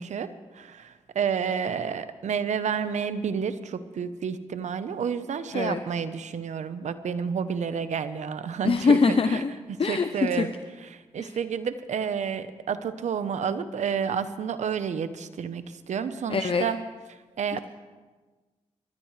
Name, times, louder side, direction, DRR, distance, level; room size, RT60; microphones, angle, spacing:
voice 1, 0.0-9.4 9.7-10.5 10.8-16.8 17.4-17.6, right 7 dB, 70° right, 12 dB, 0.9 m, -30 dB
voice 2, 8.6-9.5 9.8-10.1 10.4-10.5 11.2-11.3 16.3-16.7 17.5-17.6, left 5 dB, 50° left, 8 dB, 0.7 m, -23 dB
25.5 x 13.0 x 3.3 m, 1.3 s
supercardioid pair, 50°, 12 cm